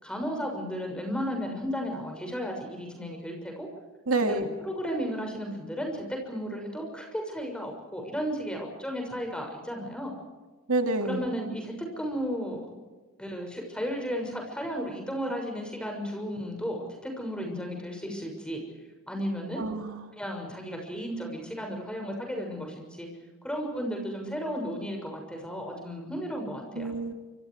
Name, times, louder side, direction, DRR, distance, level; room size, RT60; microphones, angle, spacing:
voice 1, 0.0-3.7 4.2-10.1 11.0-12.8 13.2-18.6 19.1-19.6 20.2-23.1 23.4-26.9, equal, 5° left, 2 dB, 6.5 m, -34 dB
voice 2, 4.1-4.5 10.7-11.3 19.6-20.1 26.7-27.1, right 2 dB, 80° right, 6 dB, 2.3 m, -28 dB
28.5 x 26.5 x 4.9 m, 1.3 s
head